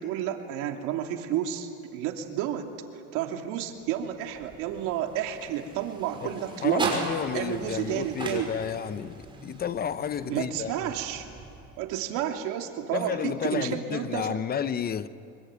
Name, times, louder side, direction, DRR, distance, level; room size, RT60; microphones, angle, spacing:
voice 1, 0.0-2.7 3.1-7.1 7.3-8.5 10.3-11.3 11.8-14.4, right 10 dB, 85° right, 2.8 m, -31 dB
sound 1, 3.8-12.0, right 3 dB, 15° right, 5.8 m, -39 dB
voice 2, 6.6-10.9 12.9-15.1, left 8 dB, 30° left, 0.8 m, -31 dB
25.5 x 23.0 x 9.4 m
cardioid pair, 140°, 30 cm